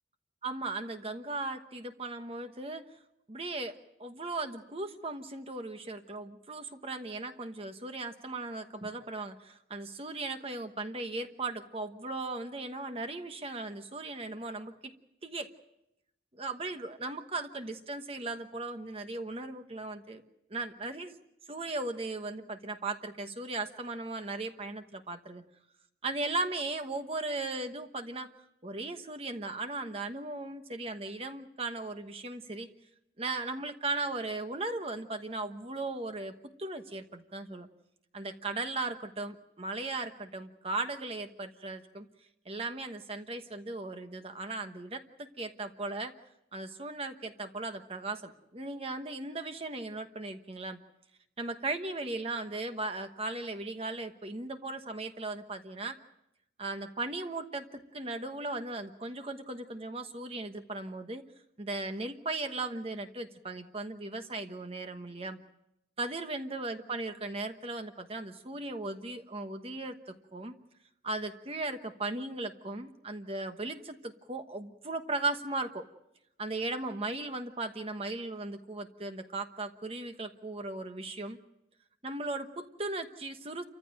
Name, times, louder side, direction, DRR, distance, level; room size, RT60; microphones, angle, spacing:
voice 1, 0.4-2.8 3.3-14.9 15.2-15.5 16.4-20.2 20.5-21.1 21.5-25.4 26.0-28.3 28.6-32.7 33.2-36.3 36.6-37.7 38.1-42.1 42.4-46.1 46.5-50.8 51.4-56.0 56.6-61.2 61.6-65.4 66.0-70.5 71.0-75.9 76.4-81.4 82.0-83.6, right 2 dB, 30° right, 7 dB, 1.1 m, -37 dB
29.5 x 15.0 x 9.0 m, 0.84 s
head